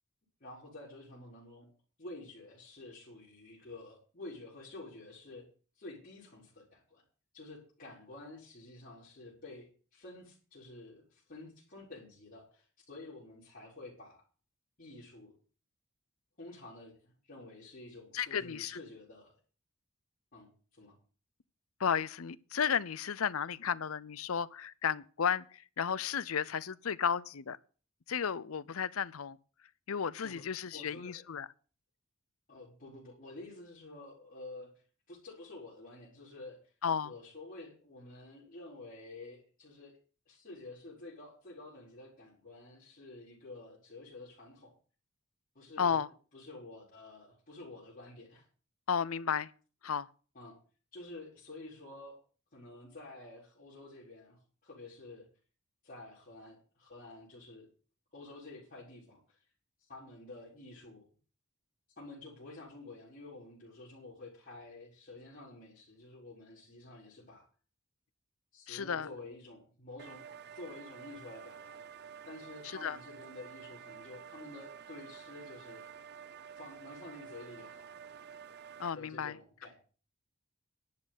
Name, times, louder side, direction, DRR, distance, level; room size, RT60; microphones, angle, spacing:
voice 1, 0.4-1.7 2.0-5.5 5.8-7.0 7.3-14.2 14.8-15.3 16.4-19.4 20.3-20.9 30.2-30.4 30.7-31.2 32.5-34.7 35.1-36.6 37.0-40.0 40.3-44.7 45.5-46.0 46.3-48.5 50.3-50.5 50.9-52.2 52.5-55.3 55.8-57.7 58.1-59.4 59.8-61.1 62.0-67.5 68.5-70.2 70.5-71.9 72.2-75.9 76.6-77.9 78.9-79.8, left 2 dB, 45° left, 4.6 m, -50 dB
voice 2, 18.1-18.8 21.8-27.6 28.1-29.4 29.9-31.5 36.8-37.1 45.8-46.1 48.9-49.5 49.8-50.1 68.7-69.1 72.6-73.0 78.8-79.4, left 7 dB, 80° left, 0.6 m, -33 dB
sound 1, 70.0-78.9, right 7 dB, 50° right, 0.6 m, -50 dB
10.5 x 6.7 x 9.0 m
head